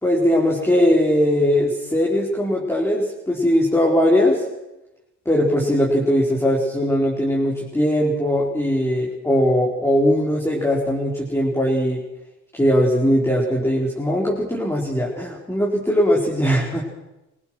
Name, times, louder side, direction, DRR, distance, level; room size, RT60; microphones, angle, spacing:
voice 1, 0.0-4.4 5.3-12.0 12.5-16.8, equal, 10° left, -3 dB, 4.4 m, -20 dB
24.5 x 17.5 x 6.4 m, 0.97 s
cardioid pair, 90°, 30 cm